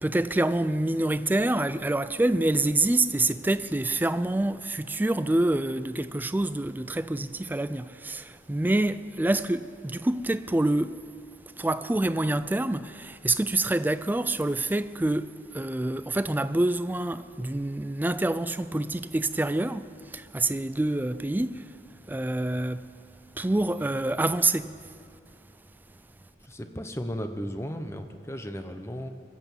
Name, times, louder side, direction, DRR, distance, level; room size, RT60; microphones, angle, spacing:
voice 1, 0.0-11.0 11.6-21.6 22.1-22.9 23.4-24.8, right 2 dB, 10° right, 0.3 m, -26 dB
voice 2, 26.4-29.1, equal, 15° left, 0.8 m, -35 dB
22.0 x 8.1 x 7.1 m
head